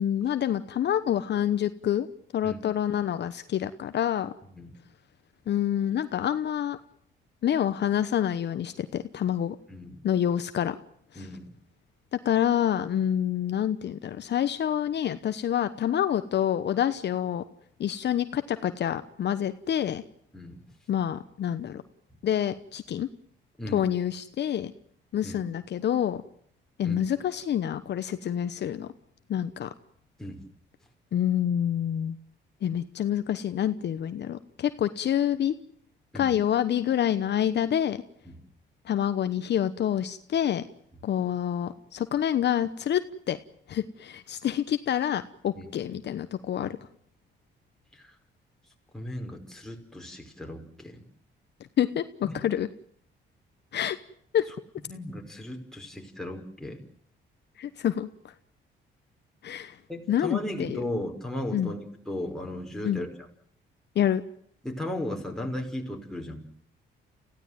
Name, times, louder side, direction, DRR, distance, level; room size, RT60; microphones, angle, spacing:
voice 1, 0.0-2.1 2.3-4.3 5.5-6.8 7.4-9.6 10.0-10.8 11.1-11.3 12.1-17.4 17.8-20.0 20.9-21.8 22.2-23.1 23.7-24.7 25.1-26.2 26.8-28.9 29.3-29.7 31.1-32.2 32.6-35.5 36.1-38.0 38.8-40.6 41.0-43.0 43.3-43.4 43.7-46.7 51.8-52.7 53.7-54.0 54.3-54.5 57.6-58.3 59.4-59.8 60.1-60.8 61.5-61.7 62.8-63.0 63.9-64.2, left 10 dB, 60° left, 11 dB, 1.0 m, -27 dB
voice 2, 11.2-11.5 20.3-20.6 23.6-23.8 25.2-25.4 26.8-27.0 30.2-30.4 36.1-36.3 38.3-38.4 45.5-45.7 48.0-48.1 48.9-51.0 52.2-52.4 54.9-56.8 59.9-63.1 64.6-66.4, left 1 dB, ahead, 1 dB, 5.3 m, -36 dB
29.0 x 16.0 x 9.2 m, 0.67 s
cardioid pair, 90°, 20 cm